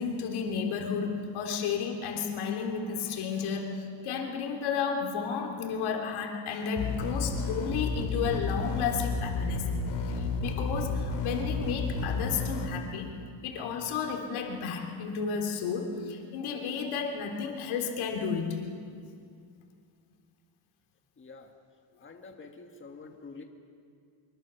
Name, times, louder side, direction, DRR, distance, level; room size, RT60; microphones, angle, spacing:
voice 1, 0.0-9.7 10.1-13.1 13.4-18.6, left 6 dB, 85° left, 2 dB, 3.5 m, -32 dB
sound 1, 6.8-12.7, left 3 dB, 60° left, 3.7 m, -31 dB
voice 2, 21.2-21.5 22.0-23.4, left 4 dB, 25° left, 3 dB, 1.9 m, -47 dB
24.5 x 23.5 x 7.0 m, 2.3 s
cardioid pair, 135°, 47 cm